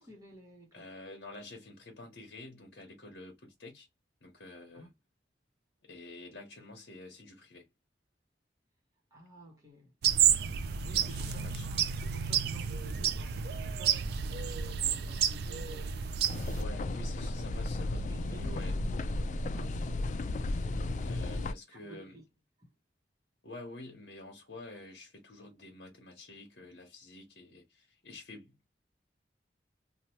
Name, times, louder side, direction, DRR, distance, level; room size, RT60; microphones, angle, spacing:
voice 1, 0.0-0.8 4.7-4.9 9.1-9.9 10.8-16.0 16.9-17.7 18.1-18.7 19.4-20.1 21.2-22.2, right 1 dB, 20° right, 0.9 m, -53 dB
voice 2, 0.7-3.9 4.2-4.9 5.8-7.7 10.9-11.7 16.5-18.8 21.0-22.2 23.4-28.6, left 2 dB, 65° left, 1.0 m, -49 dB
sound 1, 10.0-16.6, right 8 dB, 60° right, 0.3 m, -30 dB
sound 2, 16.3-21.5, left 2 dB, 40° left, 0.3 m, -34 dB
2.9 x 2.1 x 3.0 m
head